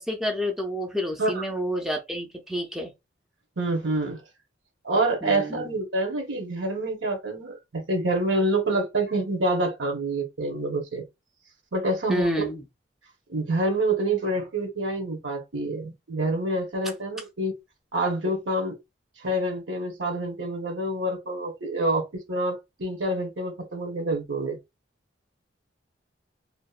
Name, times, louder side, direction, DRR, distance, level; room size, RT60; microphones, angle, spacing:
voice 1, 0.0-2.9 5.2-5.7 12.1-12.6, equal, ahead, 0.4 m, -29 dB
voice 2, 3.6-4.2 4.8-11.0 11.7-12.5 13.3-17.5 17.9-18.7 19.2-24.6, right 2 dB, 80° right, 1.0 m, -27 dB
2.8 x 2.1 x 2.4 m
head